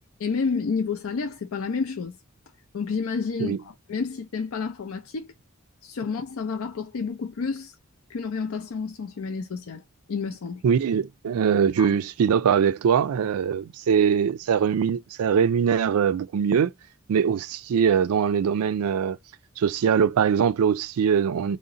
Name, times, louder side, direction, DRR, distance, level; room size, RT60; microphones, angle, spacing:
voice 1, 0.2-2.2 2.7-5.3 5.8-7.7 8.1-9.8 10.1-10.6 11.8-11.9, left 5 dB, 70° left, 0.4 m, -30 dB
voice 2, 10.6-16.7 17.1-19.2 19.6-21.6, right 7 dB, 75° right, 0.3 m, -22 dB
3.8 x 2.1 x 2.6 m
head